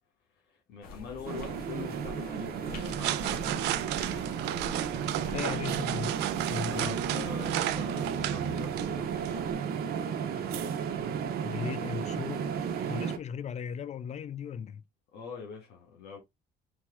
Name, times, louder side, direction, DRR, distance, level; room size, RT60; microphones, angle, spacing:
voice 1, 0.5-3.8 6.6-9.4 15.1-16.2, left 5 dB, 80° left, 1.6 m, -44 dB
sound 1, 0.8-5.9, left 3 dB, 60° left, 1.8 m, -46 dB
sound 2, 1.3-13.2, right 7 dB, 65° right, 1.0 m, -33 dB
sound 3, 2.7-9.5, right 14 dB, 90° right, 0.4 m, -35 dB
voice 2, 5.2-6.2 6.5-6.9 11.4-12.5 12.9-14.8, left 7 dB, 40° left, 0.5 m, -37 dB
4.4 x 2.9 x 3.6 m
cardioid pair, 110°, 17 cm